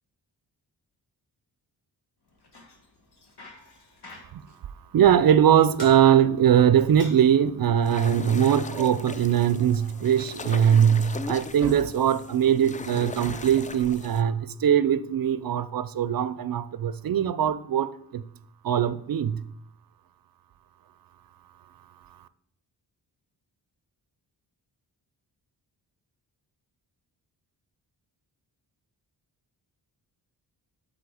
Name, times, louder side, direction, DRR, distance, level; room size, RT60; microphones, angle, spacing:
Bicycle, 2.3-10.6, left 2 dB, 60° left, 1.8 m, -52 dB
voice 1, 4.9-18.2 18.6-19.4, right 9 dB, 55° right, 0.5 m, -21 dB
sound 1, 7.8-14.2, left 4 dB, 20° left, 0.3 m, -39 dB
9.5 x 4.2 x 4.8 m
cardioid pair, 70°, 43 cm